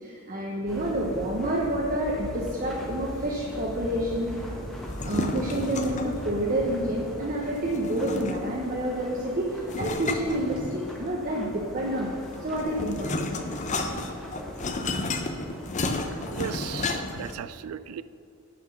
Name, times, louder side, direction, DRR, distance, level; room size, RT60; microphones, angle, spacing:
voice 1, 0.0-4.4 5.0-13.3, right 1 dB, 40° right, -1 dB, 0.8 m, -29 dB
sound 1, 0.7-17.4, equal, ahead, 1.1 m, -40 dB
sound 2, 4.9-6.2 7.7-8.7 9.7-11.1 12.2-17.3, left 3 dB, 35° left, 0.6 m, -32 dB
voice 2, 16.3-18.0, right 10 dB, 75° right, 16 dB, 0.3 m, -36 dB
8.5 x 6.0 x 5.7 m, 2.6 s
head